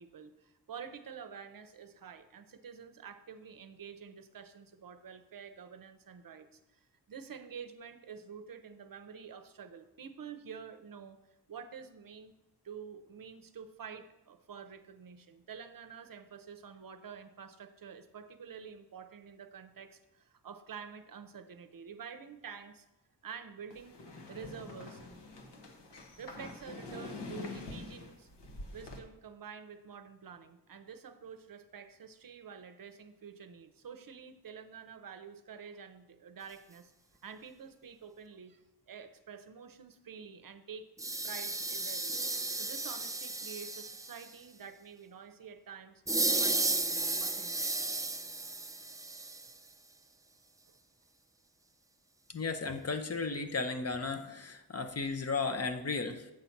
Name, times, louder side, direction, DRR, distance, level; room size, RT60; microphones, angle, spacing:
voice 1, 0.0-11.2 11.5-12.3 12.6-22.9 23.2-24.0 24.3-25.0 26.2-28.3 28.7-36.9 37.2-40.9 41.2-46.0 46.3-46.6 46.9-47.7 50.7-50.8, right 6 dB, 55° right, 9 dB, 0.6 m, -48 dB
sound 1, 23.7-29.0, left 2 dB, 80° left, 1.1 m, -46 dB
sound 2, 41.0-44.3 46.1-49.6, right 2 dB, 10° right, 0.3 m, -34 dB
voice 2, 52.3-56.3, left 4 dB, 40° left, 6 dB, 0.6 m, -35 dB
7.8 x 4.1 x 5.8 m, 0.92 s
wide cardioid pair, 105°, 41 cm